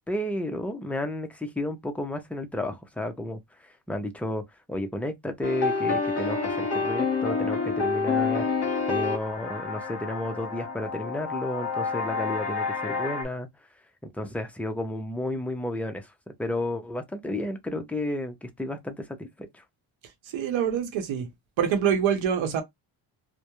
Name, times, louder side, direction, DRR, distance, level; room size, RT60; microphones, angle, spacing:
voice 1, 0.1-4.4 4.7-8.5 8.9-13.5 14.0-16.1 16.4-19.6, left 1 dB, 5° left, 0.4 m, -32 dB
sound 1, 5.4-13.2, left 4 dB, 35° left, 1.0 m, -28 dB
voice 2, 20.3-21.3 21.6-22.6, right 8 dB, 85° right, 0.8 m, -25 dB
2.2 x 2.1 x 2.9 m
cardioid pair, 115°, 46 cm